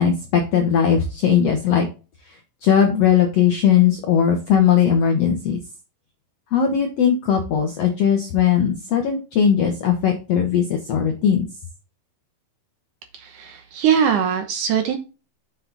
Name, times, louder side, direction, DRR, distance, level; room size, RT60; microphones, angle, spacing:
voice 1, 0.0-1.9 2.3-5.6 6.5-11.4, left 8 dB, 70° left, 4 dB, 1.5 m, -19 dB
voice 2, 13.1-15.0, right 8 dB, 70° right, 7 dB, 2.1 m, -21 dB
8.1 x 5.5 x 4.0 m, 0.31 s
omnidirectional pair, 4.4 m